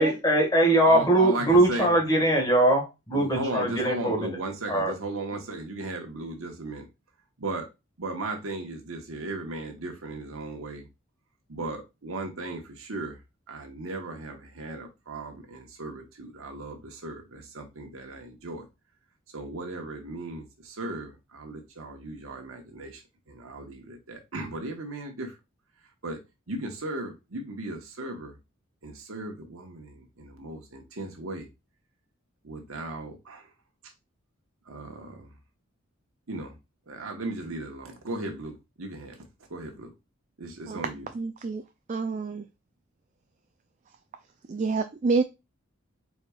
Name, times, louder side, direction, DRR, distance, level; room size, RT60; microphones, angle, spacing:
voice 1, 0.0-4.4 4.7-4.9, right 1 dB, 20° left, 1.5 m, -22 dB
voice 2, 0.8-1.9 3.1-6.8 7.4-7.7 8.0-10.8 11.5-13.2 13.5-18.6 19.3-23.0 23.3-25.3 26.0-26.2 26.5-28.3 28.8-31.5 32.4-33.4 34.7-35.3 36.3-36.5 36.9-39.2 39.5-39.9 40.4-41.1, right 2 dB, 90° right, 1.2 m, -36 dB
voice 3, 41.1-41.6 41.9-42.5 44.5-45.2, right 4 dB, 35° right, 0.4 m, -27 dB
4.6 x 4.2 x 2.3 m
head